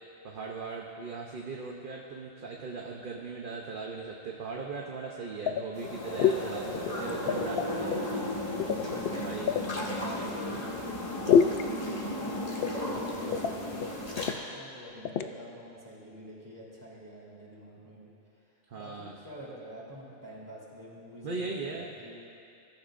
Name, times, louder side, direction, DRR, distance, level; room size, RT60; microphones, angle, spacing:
voice 1, 0.2-8.4 8.9-10.0 18.7-19.1 21.2-21.9, right 4 dB, 45° right, -1 dB, 0.9 m, -39 dB
sound 1, 5.5-5.9 6.2-6.4 6.7-8.0 8.6-9.7 11.3-11.6 12.6-13.0 13.3-13.5 13.8-13.9 14.2-14.4 15.0-15.3, left 7 dB, 65° left, 0.6 m, -26 dB
sound 2, 5.7-14.3, left 1 dB, 30° left, 1.6 m, -35 dB
voice 2, 6.6-7.2 9.5-22.2, equal, 15° right, -7 dB, 3.5 m, -47 dB
22.0 x 13.5 x 2.6 m, 2.7 s
omnidirectional pair, 1.4 m